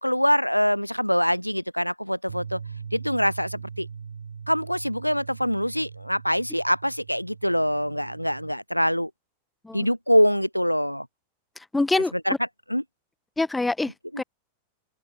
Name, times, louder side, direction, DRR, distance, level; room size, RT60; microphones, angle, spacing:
voice 1, 0.0-2.6 2.9-3.9 4.5-9.1 9.7-11.1 11.9-12.3 12.7-12.8 14.1-14.2, equal, 90° left, 0.5 m, -24 dB
Bass guitar, 2.3-8.5, right 6 dB, 70° right, 2.9 m, -40 dB
voice 2, 11.7-12.1 13.4-14.2, left 2 dB, 10° left, 0.8 m, -25 dB
open air
figure-of-eight pair, 90°, 0 cm